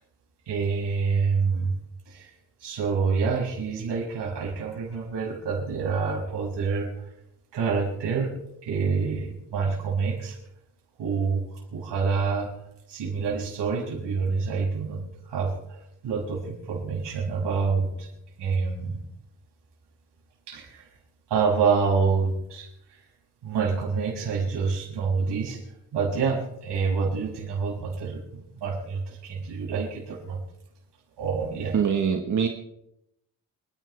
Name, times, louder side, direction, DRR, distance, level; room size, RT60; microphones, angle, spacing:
voice 1, 0.5-1.7 2.1-2.3 2.6-6.9 7.5-8.3 8.6-10.4 11.0-11.4 11.7-12.5 12.9-18.1 18.4-19.0 20.5-20.9 21.3-22.7 23.4-25.6 25.9-30.4 31.2-31.7, right 5 dB, 75° right, -3 dB, 6.0 m, -27 dB
voice 2, 31.7-32.5, right 7 dB, 45° right, 4 dB, 1.4 m, -23 dB
28.5 x 11.0 x 3.4 m, 0.81 s
cardioid pair, 120°, 41 cm